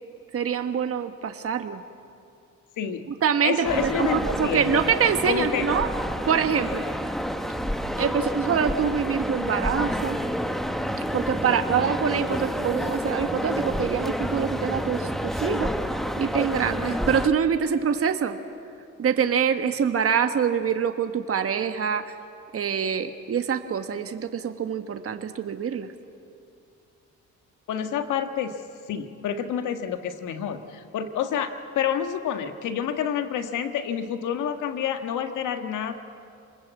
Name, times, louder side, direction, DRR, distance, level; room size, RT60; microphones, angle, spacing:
voice 1, 0.3-1.8 3.2-5.9 6.2-6.8 8.0-10.2 11.1-15.7 16.2-18.4 19.0-22.1 22.5-25.9, right 7 dB, 50° right, 7 dB, 1.4 m, -25 dB
voice 2, 2.8-3.1 3.4-4.8 5.3-5.7 27.7-28.6 28.9-35.9, left 8 dB, 85° left, 7 dB, 1.6 m, -28 dB
sound 1, 3.6-17.3, equal, ahead, 1.4 m, -29 dB
28.0 x 20.5 x 8.3 m, 2.5 s
cardioid pair, 90°, 30 cm